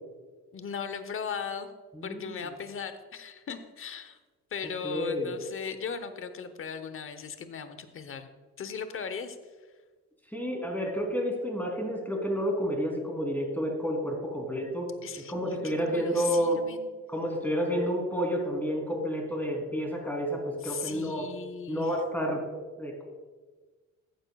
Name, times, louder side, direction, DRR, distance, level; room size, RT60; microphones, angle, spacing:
voice 1, 0.5-1.7 2.0-4.2 4.5-8.3 8.6-9.4 15.0-16.9 20.6-21.9, left 6 dB, 45° left, 10 dB, 0.9 m, -38 dB
voice 2, 1.9-2.4 4.8-5.3 10.3-14.9 15.3-16.6 17.1-21.3 21.7-22.4 22.8-23.0, equal, 5° left, 0 dB, 3.0 m, -30 dB
14.0 x 9.1 x 2.3 m, 1.4 s
cardioid pair, 90°, 30 cm